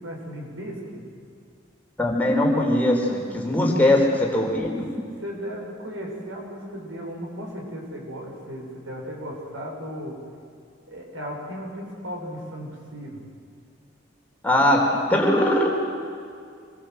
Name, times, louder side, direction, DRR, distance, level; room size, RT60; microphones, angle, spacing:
voice 1, 0.0-1.0 3.5-4.0 5.2-10.2 10.9-13.2, equal, 85° right, -1 dB, 6.9 m, -35 dB
voice 2, 2.0-4.0 4.3-4.9 14.4-15.7, left 1 dB, 10° left, -1 dB, 4.2 m, -20 dB
26.5 x 21.5 x 8.1 m, 2.3 s
head